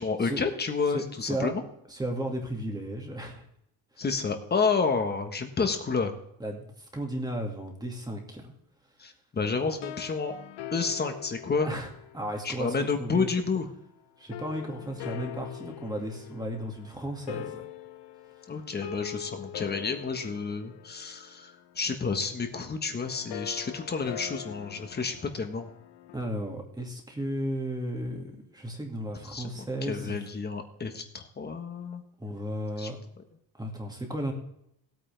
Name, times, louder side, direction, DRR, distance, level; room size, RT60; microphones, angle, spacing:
voice 1, 0.0-1.6 4.0-6.1 9.0-10.3 10.7-11.7 12.4-13.7 18.5-25.7 29.3-32.0 32.8-32.9, left 4 dB, 20° left, 6 dB, 1.4 m, -30 dB
voice 2, 0.9-1.5 1.9-3.5 6.4-8.5 11.6-11.9 12.1-13.3 14.2-17.6 26.1-30.2 32.2-33.0 33.6-34.3, right 1 dB, 10° right, 1 dB, 2.2 m, -34 dB
sound 1, 9.7-13.0 14.3-26.3, left 11 dB, 65° left, 1.0 m, -43 dB
19.0 x 9.1 x 3.5 m, 0.75 s
cardioid pair, 165°, 45 cm